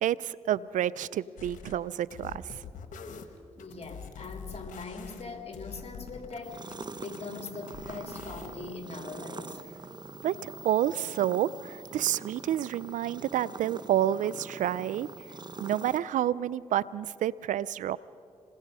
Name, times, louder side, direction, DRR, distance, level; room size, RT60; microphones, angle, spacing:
voice 1, 0.0-2.5 10.2-15.1 15.6-18.0, right 11 dB, 85° right, 20 dB, 0.4 m, -29 dB
sound 1, 1.4-1.8 2.1-6.4 6.7-8.7, left 6 dB, 85° left, 1.2 m, -45 dB
voice 2, 3.6-6.6 7.0-9.6, left 3 dB, 55° left, 4 dB, 2.8 m, -41 dB
sound 2, 6.4-16.0, right 3 dB, 35° right, 0.8 m, -44 dB
27.0 x 20.0 x 5.5 m, 2.7 s
supercardioid pair, 45°, 13 cm